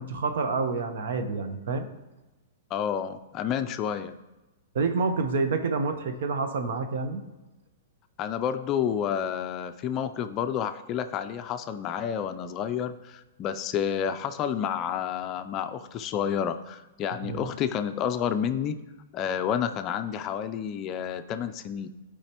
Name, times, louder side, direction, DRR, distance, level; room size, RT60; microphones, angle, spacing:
voice 1, 0.0-1.9 4.7-7.2 17.2-17.5, right 4 dB, 65° right, 8 dB, 0.9 m, -28 dB
voice 2, 2.7-4.1 8.2-18.8 19.1-21.9, left 8 dB, 30° left, 9 dB, 0.4 m, -30 dB
12.0 x 4.9 x 3.0 m, 1.0 s
hypercardioid pair, 150°, 0 cm